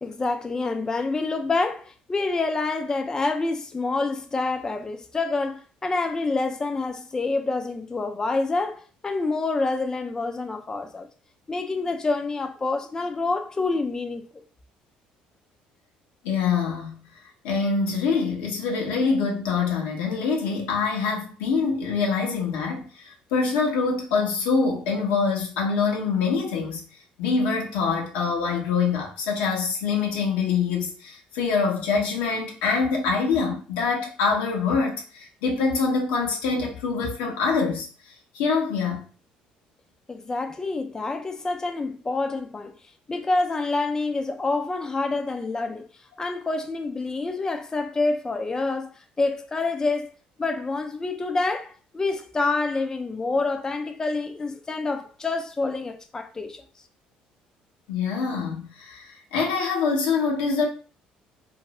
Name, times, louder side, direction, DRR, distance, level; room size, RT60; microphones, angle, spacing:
voice 1, 0.0-11.1 11.5-14.3 40.1-42.7 43.1-45.9 46.2-48.9 49.2-50.1 50.4-56.6, left 3 dB, 20° left, 0.4 m, -27 dB
voice 2, 16.2-17.0 17.4-26.8 27.2-37.9 38.3-39.1 57.9-60.7, left 5 dB, 85° left, 0.9 m, -25 dB
2.6 x 2.6 x 3.0 m
supercardioid pair, 80°, 3 cm